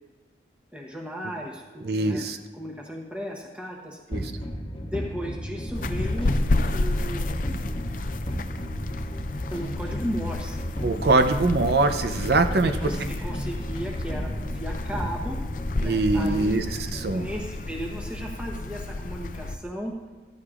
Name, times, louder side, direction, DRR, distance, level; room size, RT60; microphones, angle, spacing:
voice 1, 0.7-2.3 2.5-4.0 4.8-6.4 6.7-7.6 9.5-10.6 12.6-15.4 15.8-16.5 16.9-19.9, equal, 5° right, -1 dB, 1.0 m, -35 dB
voice 2, 1.8-2.4 4.1-4.3 10.8-12.7 15.8-17.3, right 3 dB, 60° right, 8 dB, 0.5 m, -23 dB
sound 1, 4.1-17.4, equal, 30° left, 1.1 m, -34 dB
sound 2, 5.7-19.5, left 2 dB, 45° left, 0.4 m, -31 dB
14.5 x 13.0 x 2.5 m, 1.3 s
head